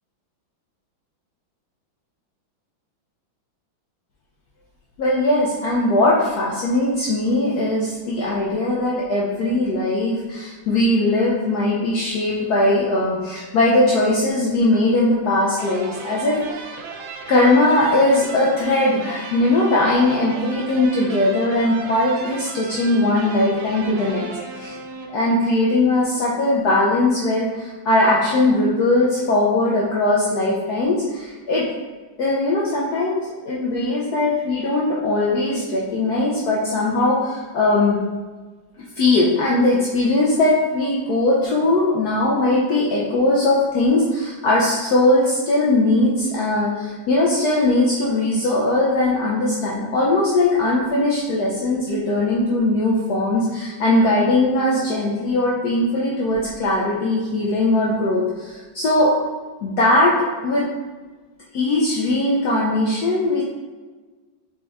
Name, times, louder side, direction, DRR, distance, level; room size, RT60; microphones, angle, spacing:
voice 1, 5.0-16.8 17.3-24.3 24.6-24.8 25.1-31.6 32.2-38.0 39.0-59.1 59.6-60.6 61.5-63.4, left 2 dB, 70° left, -5 dB, 0.9 m, -20 dB
sound 1, 15.5-25.5, right 4 dB, 85° right, 1.4 m, -36 dB
4.0 x 3.3 x 3.5 m, 1.3 s
omnidirectional pair, 2.2 m